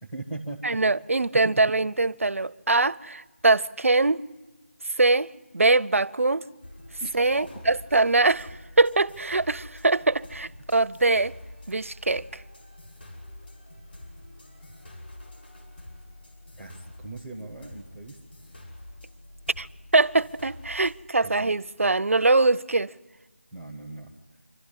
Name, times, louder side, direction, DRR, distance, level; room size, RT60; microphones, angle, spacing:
voice 1, 0.0-0.8 1.3-1.5 7.0-7.7 16.6-18.2 21.2-21.5 23.5-24.1, right 2 dB, ahead, 0.6 m, -39 dB
voice 2, 0.6-4.2 5.0-6.5 7.1-11.3 11.7-12.4 19.6-19.7 19.9-22.9, right 3 dB, 75° right, 0.6 m, -23 dB
sound 1, 6.6-21.1, left 1 dB, 50° left, 5.8 m, -46 dB
26.0 x 12.5 x 10.0 m
figure-of-eight pair, 175°, 7 cm